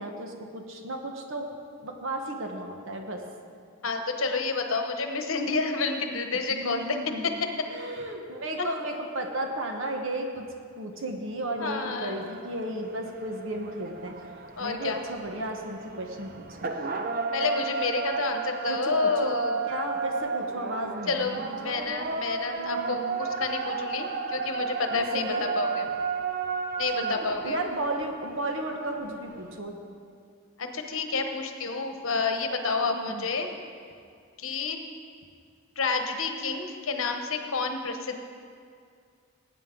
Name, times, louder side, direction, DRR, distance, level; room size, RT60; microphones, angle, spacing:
voice 1, 0.0-1.5 1.8-3.2 6.5-10.5 10.8-14.2 14.6-16.8 18.7-19.4 19.7-21.7 22.6-23.2 24.9-25.4 27.0-29.8 32.8-33.3, right 1 dB, 65° right, 3 dB, 1.2 m, -34 dB
voice 2, 3.8-7.0 7.2-7.5 11.6-12.2 14.6-15.0 17.3-19.7 21.1-25.2 25.6-25.9 26.8-27.6 30.6-33.5 34.4-34.8 35.8-38.2, left 4 dB, 75° left, 5 dB, 1.0 m, -29 dB
sound 1, 12.1-29.6, right 4 dB, 45° right, 0.6 m, -33 dB
18.5 x 9.0 x 3.8 m, 2.2 s
head